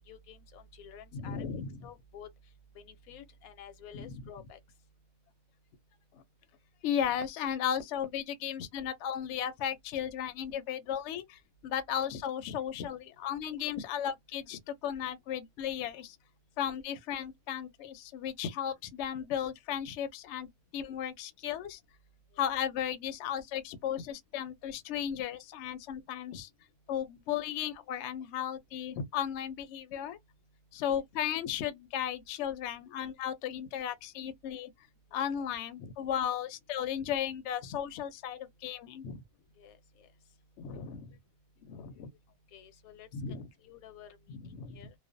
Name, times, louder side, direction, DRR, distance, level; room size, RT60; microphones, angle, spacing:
voice 1, 0.0-1.5 1.8-2.3 2.7-4.6 22.3-22.4 35.1-35.3 39.6-40.1 42.5-43.1 43.6-44.2 44.7-44.9, left 7 dB, 85° left, 1.1 m, -51 dB
voice 2, 1.1-1.7 3.9-4.2 6.8-16.2 16.6-21.8 22.4-26.5 26.9-30.2 30.7-34.7 35.1-39.2 40.6-41.2 41.6-42.1 43.1-43.5 44.3-44.8, left 9 dB, 65° left, 0.7 m, -35 dB
2.4 x 2.1 x 2.5 m
omnidirectional pair, 1.5 m